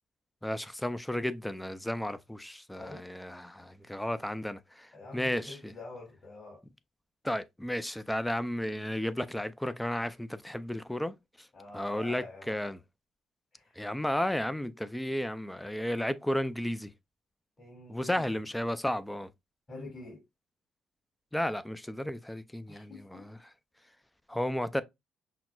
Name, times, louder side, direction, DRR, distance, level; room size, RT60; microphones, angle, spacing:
voice 1, 0.4-5.7 7.2-11.1 11.7-12.8 13.8-16.9 17.9-19.3 21.3-23.4 24.3-24.8, left 1 dB, 5° left, 0.4 m, -33 dB
voice 2, 2.7-3.1 3.6-3.7 4.9-6.6 11.5-12.5 13.5-13.8 17.6-18.3 19.7-20.2 22.7-23.5, left 2 dB, 35° left, 2.2 m, -47 dB
5.8 x 2.1 x 2.3 m
cardioid pair, 90°, 0 cm